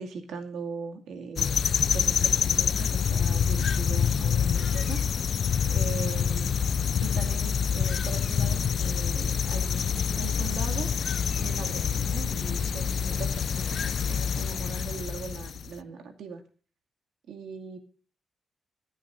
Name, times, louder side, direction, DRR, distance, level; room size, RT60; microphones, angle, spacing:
voice 1, 0.0-1.6 1.9-6.5 7.0-10.9 11.4-16.4 17.3-17.8, right 5 dB, 85° right, 5 dB, 2.4 m, -40 dB
crickets chirping (with birds and other bugs), 1.4-15.7, left 7 dB, 55° left, 0.5 m, -26 dB
25.5 x 9.1 x 2.6 m, 0.36 s
wide cardioid pair, 165°, 0 cm